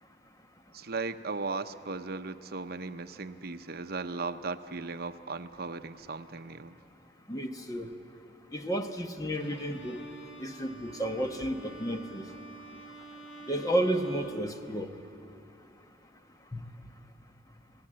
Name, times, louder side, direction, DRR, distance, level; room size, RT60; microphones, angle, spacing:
voice 1, 0.7-6.8, right 4 dB, 60° right, 9 dB, 0.8 m, -37 dB
voice 2, 7.3-7.9 8.5-10.0 10.4-12.3 13.5-15.0 16.5-16.6, right 1 dB, 20° left, 6 dB, 1.1 m, -32 dB
Bowed string instrument, 9.3-15.3, right 2 dB, 70° left, 2.6 m, -48 dB
28.0 x 17.5 x 7.6 m, 2.6 s
head